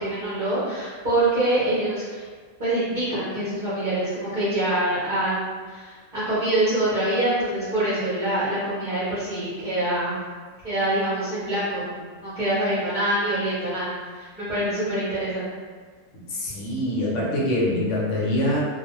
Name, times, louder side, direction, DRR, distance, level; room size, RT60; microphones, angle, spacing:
voice 1, 0.0-2.2 2.6-10.1 10.6-11.9 12.2-15.5, right 1 dB, 40° right, -14 dB, 0.8 m, -25 dB
voice 2, 16.1-18.6, left 1 dB, 65° left, -5 dB, 0.9 m, -24 dB
2.4 x 2.1 x 2.9 m, 1.5 s
omnidirectional pair, 1.4 m